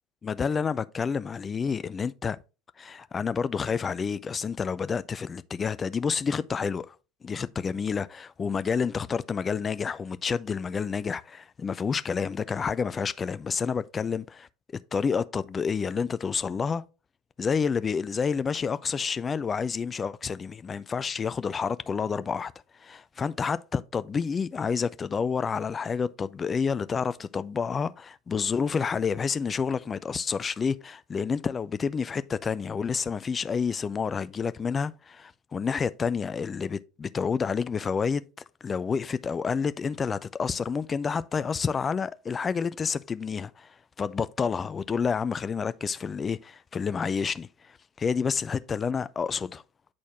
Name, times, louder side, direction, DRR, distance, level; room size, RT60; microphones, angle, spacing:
voice 1, 0.2-2.4 2.8-7.0 7.2-14.5 14.9-16.8 17.4-22.5 22.8-38.3 38.6-49.6, left 6 dB, 25° left, 0.4 m, -29 dB
9.1 x 4.2 x 2.9 m
figure-of-eight pair, 70°, 0 cm